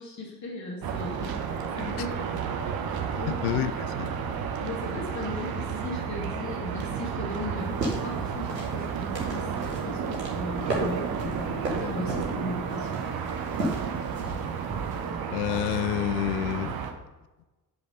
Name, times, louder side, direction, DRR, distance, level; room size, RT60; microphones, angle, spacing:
voice 1, 0.0-1.3 1.8-2.4 3.2-3.4 4.6-9.5 9.9-13.0, left 2 dB, 35° left, -1 dB, 1.9 m, -37 dB
sound 1, 0.8-16.9, right 7 dB, 50° right, 1.0 m, -32 dB
voice 2, 3.3-4.2 15.3-16.8, left 13 dB, 65° left, 13 dB, 0.6 m, -29 dB
sound 2, 7.6-15.1, right 2 dB, 85° right, 1.3 m, -34 dB
8.2 x 5.2 x 4.8 m, 1.1 s
figure-of-eight pair, 45°, 48 cm